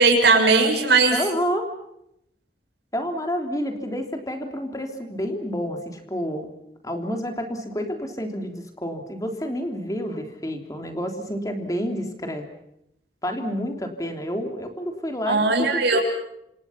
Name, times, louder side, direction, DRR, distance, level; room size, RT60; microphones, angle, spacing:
voice 1, 0.0-1.1 15.3-16.0, right 3 dB, 80° right, 3 dB, 6.6 m, -18 dB
voice 2, 1.1-1.7 2.9-6.5 6.8-12.4 13.2-16.0, equal, 20° left, 4 dB, 3.3 m, -29 dB
27.5 x 27.0 x 5.9 m, 0.78 s
head